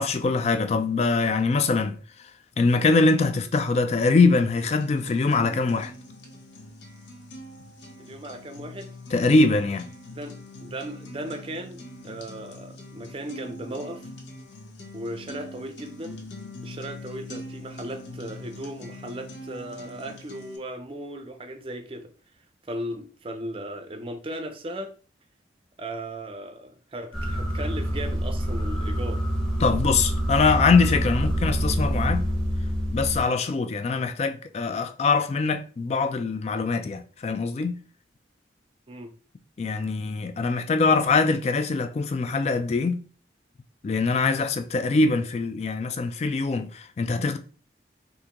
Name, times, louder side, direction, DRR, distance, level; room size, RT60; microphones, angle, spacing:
voice 1, 0.0-2.0 2.6-5.9 9.1-9.9 29.6-32.3 32.9-37.8 39.6-43.0 43.8-47.4, left 3 dB, 35° left, 0.3 m, -23 dB
sound 1, 4.6-20.6, left 1 dB, 85° left, 0.7 m, -42 dB
voice 2, 8.0-8.9 10.1-14.1 14.9-16.2 16.6-22.1 22.7-24.9 25.8-29.2 38.9-39.1, right 1 dB, 30° right, 0.5 m, -37 dB
sound 2, 27.1-33.2, equal, ahead, 0.9 m, -26 dB
3.6 x 2.6 x 2.9 m
head